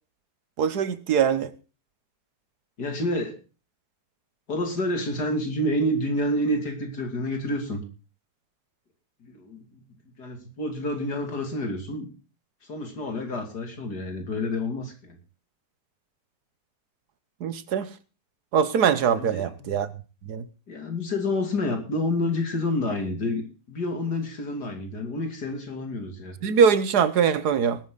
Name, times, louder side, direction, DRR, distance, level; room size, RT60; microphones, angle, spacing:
voice 1, 0.6-1.5 17.4-17.9 18.5-19.9 20.3-20.4 26.4-27.8, right 7 dB, 75° right, 1.6 m, -22 dB
voice 2, 2.8-3.4 4.5-7.8 9.2-9.8 10.2-12.1 12.6-15.2 19.1-19.7 20.7-26.4, left 1 dB, 75° left, 3.5 m, -29 dB
20.0 x 9.2 x 4.0 m
omnidirectional pair, 1.7 m